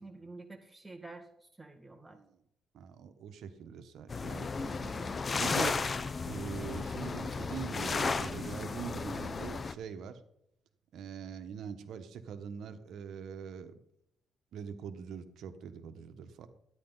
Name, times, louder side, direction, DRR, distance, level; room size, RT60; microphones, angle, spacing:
voice 1, 0.0-2.2 4.6-5.2, right 2 dB, 15° right, 3 dB, 1.8 m, -49 dB
voice 2, 2.7-4.9 5.4-5.8 6.3-10.2 10.9-13.7 14.5-16.5, right 7 dB, 75° right, 9 dB, 1.2 m, -43 dB
sound 1, 4.1-9.7, left 4 dB, 35° left, 0.7 m, -34 dB
13.0 x 10.0 x 4.0 m, 0.76 s
cardioid pair, 90°, 0 cm